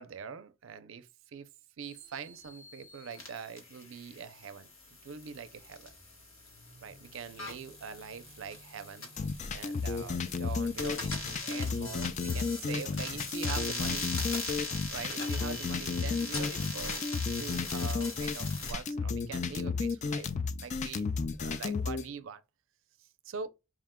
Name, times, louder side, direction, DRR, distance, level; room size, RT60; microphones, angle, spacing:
voice 1, 0.0-1.5 1.8-4.7 5.0-5.9 6.8-9.1 9.5-14.1 14.9-17.1 17.3-20.3 20.6-21.1 21.4-22.4 23.0-23.5, right 6 dB, 75° right, 0.4 m, -43 dB
sound 1, 1.8-18.7, left 3 dB, 80° left, 1.5 m, -41 dB
sound 2, 9.2-22.0, left 4 dB, 35° left, 0.3 m, -33 dB
4.7 x 2.2 x 3.5 m
head